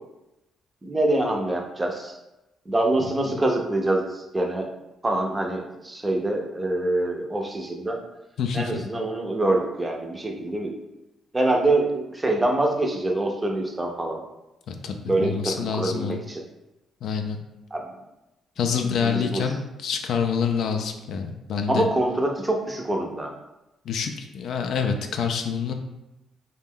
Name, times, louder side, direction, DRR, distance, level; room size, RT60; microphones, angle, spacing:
voice 1, 0.8-2.1 2.7-4.7 5.0-8.0 8.5-10.8 11.3-14.2 15.0-16.4 17.7-17.8 18.8-19.4 21.7-23.3, right 2 dB, 20° right, 2 dB, 0.5 m, -25 dB
voice 2, 8.4-8.7 14.7-16.2 17.0-17.4 18.6-21.9 23.9-25.7, left 6 dB, 70° left, 5 dB, 0.3 m, -27 dB
2.5 x 2.1 x 3.5 m, 0.95 s
cardioid pair, 90°, 0 cm